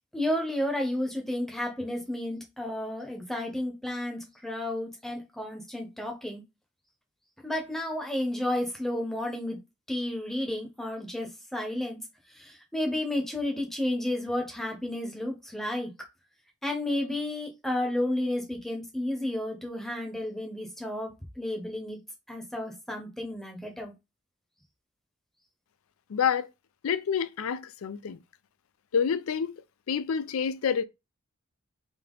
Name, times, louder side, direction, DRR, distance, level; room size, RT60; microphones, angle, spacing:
voice 1, 0.1-6.4 7.4-9.6 9.9-12.0 12.3-15.9 16.6-22.0 22.3-23.9, left 1 dB, ahead, 0.8 m, -32 dB
voice 2, 26.1-26.5 26.8-28.2 28.9-29.6 29.9-30.8, left 7 dB, 75° left, 0.4 m, -28 dB
3.6 x 2.8 x 3.8 m
head